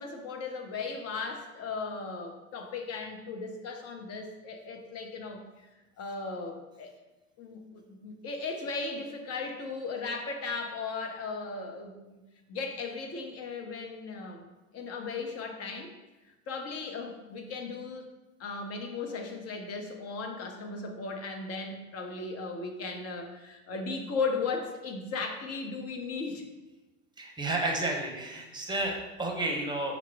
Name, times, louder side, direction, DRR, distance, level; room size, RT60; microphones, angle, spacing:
voice 1, 0.0-5.7 6.0-6.9 7.4-12.2 12.5-14.5 14.7-15.9 16.5-18.1 18.4-26.4, left 4 dB, 40° left, 4 dB, 0.8 m, -36 dB
voice 2, 27.2-30.0, right 2 dB, 10° right, 1 dB, 0.8 m, -31 dB
5.8 x 2.0 x 4.5 m, 1.1 s
hypercardioid pair, 75°, 40 cm